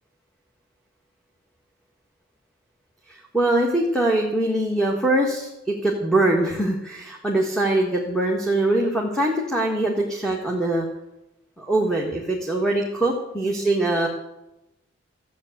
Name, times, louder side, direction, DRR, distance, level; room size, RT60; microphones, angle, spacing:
voice 1, 3.1-10.9 11.6-14.1, right 1 dB, 5° left, -1 dB, 1.6 m, -22 dB
14.0 x 8.2 x 8.0 m, 0.91 s
head